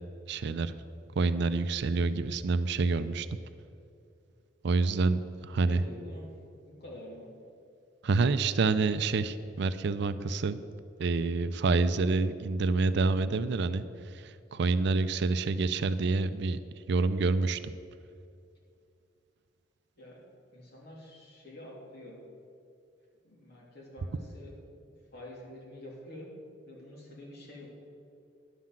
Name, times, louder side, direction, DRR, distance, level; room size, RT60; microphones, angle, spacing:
voice 1, 0.3-0.7 1.2-3.3 4.6-5.8 8.0-10.6 11.0-13.8 14.2-16.6 16.9-17.6, right 3 dB, 65° right, 13 dB, 0.4 m, -27 dB
voice 2, 5.6-6.3 6.7-7.3 20.0-20.2 20.5-22.2 23.2-26.3 26.6-27.7, left 1 dB, 60° left, -4 dB, 3.0 m, -47 dB
11.0 x 5.8 x 7.4 m, 2.5 s
head